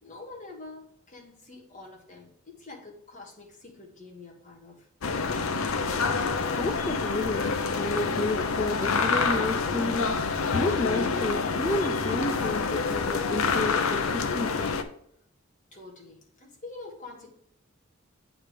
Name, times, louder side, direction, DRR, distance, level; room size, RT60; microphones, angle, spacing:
voice 1, 0.0-4.9 15.7-17.3, left 3 dB, 40° left, 0 dB, 1.6 m, -46 dB
sound 1, 5.0-14.8, left 4 dB, 90° left, 0.6 m, -27 dB
voice 2, 6.6-14.8, left 2 dB, 20° left, 7 dB, 0.3 m, -31 dB
8.8 x 3.3 x 4.9 m, 0.69 s
head